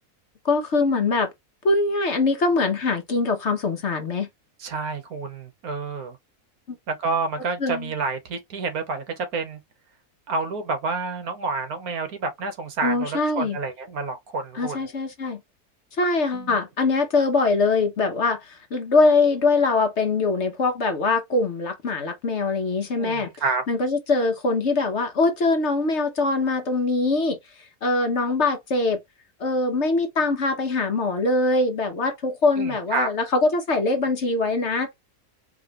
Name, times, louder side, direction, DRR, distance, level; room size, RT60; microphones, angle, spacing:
voice 1, 0.4-1.3 1.6-4.3 7.6-7.9 12.8-13.6 14.5-15.4 16.0-23.3 23.7-27.4 27.8-29.0 29.4-34.9, left 3 dB, 50° left, 1.2 m, -22 dB
voice 2, 4.6-6.2 6.9-9.6 10.3-14.9 16.3-16.6 23.0-23.6 32.6-33.1, right 4 dB, 70° right, 1.5 m, -29 dB
4.7 x 3.0 x 3.0 m
omnidirectional pair, 1.7 m